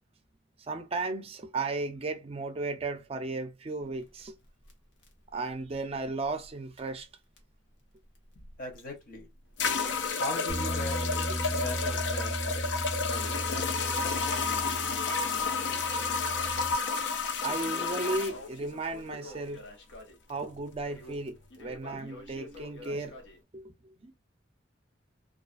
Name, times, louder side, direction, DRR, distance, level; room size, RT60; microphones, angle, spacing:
voice 1, 0.7-4.4 5.3-7.1 14.7-14.8 17.4-19.7 20.3-23.2 23.5-23.7 24.0-24.1, right 3 dB, 30° right, 0.4 m, -35 dB
Crackle, 3.8-6.5 6.8-6.9 7.4-7.5 8.1-8.8 9.1-23.4, left 2 dB, 85° left, 0.8 m, -48 dB
voice 2, 8.6-9.3 10.2-11.0 11.5-12.3 13.0-13.8, left 1 dB, 50° left, 0.9 m, -39 dB
sound 1, 8.8-8.9 9.6-18.3, left 5 dB, 70° left, 0.4 m, -31 dB
Bass guitar, 10.5-16.7, right 1 dB, 20° left, 0.7 m, -36 dB
2.4 x 2.4 x 2.4 m
head